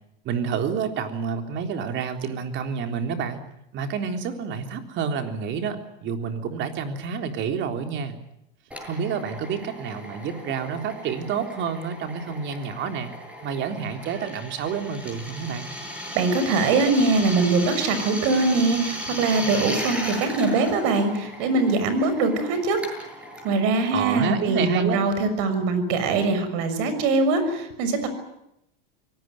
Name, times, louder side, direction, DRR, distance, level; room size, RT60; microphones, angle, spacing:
voice 1, 0.3-3.4 3.7-8.2 8.9-13.1 13.4-15.7 23.9-25.0, right 6 dB, 40° right, 6 dB, 3.7 m, -29 dB
Drill, 8.7-25.0, equal, 5° right, 8.0 m, -36 dB
voice 2, 16.1-22.8 23.4-28.1, right 3 dB, 55° right, 10 dB, 6.3 m, -22 dB
24.0 x 18.5 x 9.3 m, 0.82 s
supercardioid pair, 125°, 29 cm